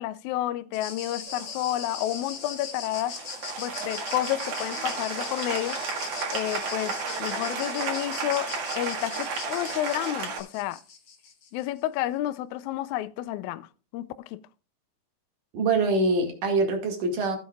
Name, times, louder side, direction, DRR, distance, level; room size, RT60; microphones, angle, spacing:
voice 1, 0.0-3.2 3.6-5.8 6.3-10.8 11.5-14.4, left 14 dB, 80° left, 1.7 m, -30 dB
sound 1, 0.7-11.7, left 6 dB, 45° left, 1.7 m, -40 dB
Applause, 1.3-10.4, right 5 dB, 90° right, 3.7 m, -33 dB
voice 2, 15.5-17.4, right 3 dB, 65° right, 3.6 m, -24 dB
16.0 x 7.9 x 2.4 m
omnidirectional pair, 4.0 m